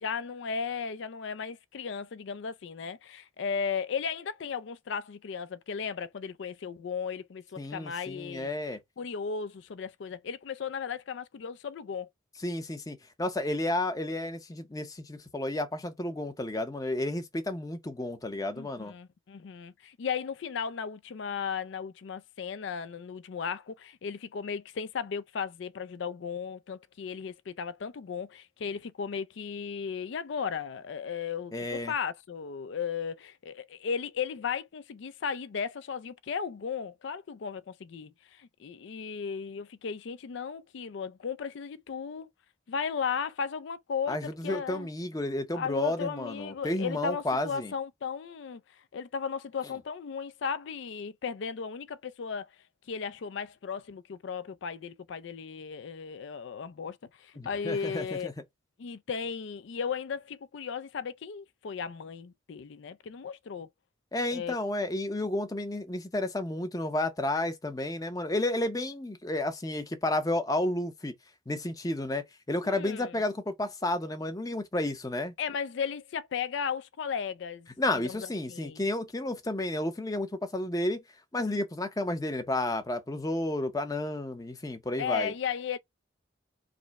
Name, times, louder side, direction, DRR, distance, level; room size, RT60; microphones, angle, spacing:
voice 1, 0.0-8.5 9.0-12.1 18.5-42.3 42.7-44.9 45.5-48.6 48.9-52.5 52.9-58.3 58.8-63.7 64.3-64.5 72.6-73.2 75.4-77.7 78.0-78.8 85.0-85.8, left 6 dB, 60° left, 0.4 m, -35 dB
voice 2, 7.6-8.8 12.4-18.9 31.5-31.9 44.1-47.7 57.4-58.3 64.1-71.1 71.5-75.3 77.8-81.0 81.3-85.3, left 1 dB, 20° left, 0.6 m, -32 dB
4.9 x 2.1 x 4.5 m
head